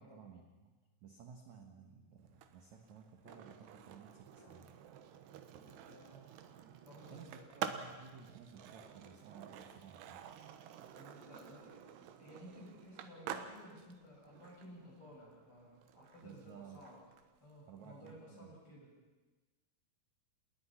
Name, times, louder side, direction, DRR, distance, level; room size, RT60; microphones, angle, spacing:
voice 1, 0.0-4.7 7.1-10.3 16.2-16.9 17.6-18.5, right 6 dB, 55° right, 3 dB, 2.3 m, -56 dB
Skateboard, 2.3-18.1, right 9 dB, 75° right, 3.2 m, -50 dB
Bark, 3.2-3.5 4.4-4.6 5.6-6.4 7.0-7.5 8.7-9.9 11.1-12.0 12.9-13.8, left 5 dB, 80° left, 5.4 m, -65 dB
voice 2, 5.9-6.3 6.8-7.5 10.9-11.8 12.2-17.0 17.4-18.9, equal, 30° left, -3 dB, 8.4 m, -56 dB
29.5 x 20.0 x 5.8 m, 1.2 s
omnidirectional pair, 5.0 m